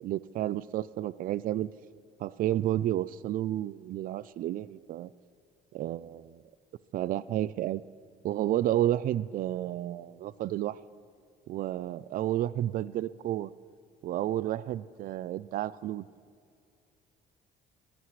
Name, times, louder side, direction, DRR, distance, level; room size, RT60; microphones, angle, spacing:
voice 1, 0.0-1.7 2.2-5.1 5.7-6.4 6.9-7.8 8.2-10.8 11.5-13.5 14.0-16.0, right 13 dB, 55° right, 19 dB, 0.4 m, -31 dB
20.5 x 15.0 x 3.2 m, 2.2 s
cardioid pair, 110°, 17 cm